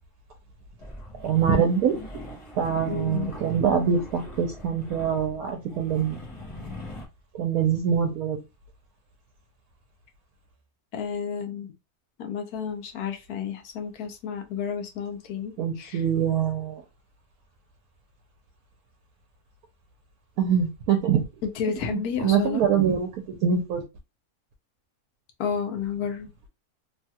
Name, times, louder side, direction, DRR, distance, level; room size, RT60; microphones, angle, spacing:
sound 1, 0.8-7.0, left 1 dB, 35° left, 0.5 m, -42 dB
voice 1, 1.2-2.0 2.6-6.2 7.3-8.4 15.6-16.8 20.4-21.2 21.9-23.8, right 7 dB, 75° right, 1.1 m, -24 dB
voice 2, 2.9-3.3 10.9-11.7 12.2-16.0 21.4-22.6 25.4-26.3, left 7 dB, 80° left, 1.2 m, -31 dB
3.1 x 2.3 x 2.7 m
omnidirectional pair, 1.6 m